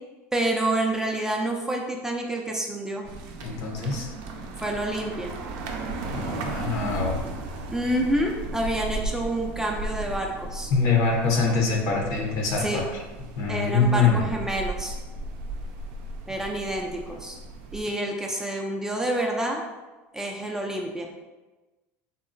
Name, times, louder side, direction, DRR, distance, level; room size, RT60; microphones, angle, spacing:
voice 1, 0.3-3.0 4.6-5.3 7.7-10.7 12.6-12.9 13.5-14.9 16.3-17.4 17.7-19.6 20.1-21.1, right 1 dB, 10° right, 0 dB, 0.4 m, -28 dB
sound 1, 3.0-17.8, right 2 dB, 75° right, 0.4 m, -36 dB
voice 2, 3.4-4.1 6.1-7.2 10.7-12.9 13.4-14.3, left 4 dB, 60° left, 0 dB, 0.7 m, -24 dB
3.7 x 2.0 x 2.6 m, 1.2 s
supercardioid pair, 100°, 6 cm